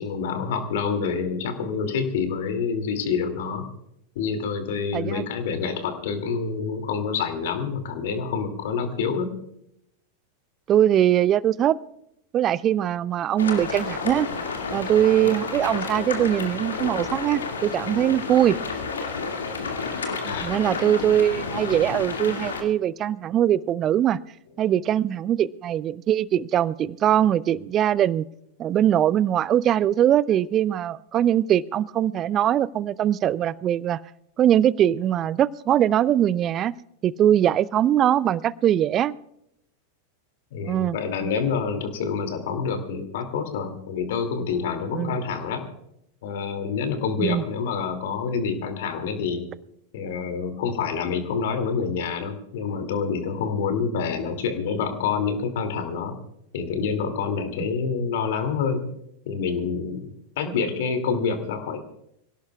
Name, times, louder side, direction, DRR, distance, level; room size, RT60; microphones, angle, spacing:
voice 1, 0.0-3.6 4.1-9.3 20.2-20.6 40.5-45.6 46.2-49.5 49.9-56.1 56.5-58.9 59.3-60.1 60.4-61.8, left 5 dB, 55° left, 7 dB, 2.5 m, -27 dB
voice 2, 4.9-5.2 10.7-11.8 12.3-14.3 14.7-18.6 20.2-24.2 24.6-28.3 28.6-34.0 34.4-36.7 37.0-39.1 40.6-41.0 44.9-45.2 47.2-47.4 60.5-60.6, right 11 dB, 30° right, 22 dB, 0.5 m, -21 dB
sound 1, 13.4-22.6, left 4 dB, 70° left, 2.2 m, -30 dB
26.0 x 17.0 x 2.4 m, 0.77 s
figure-of-eight pair, 90°, 0 cm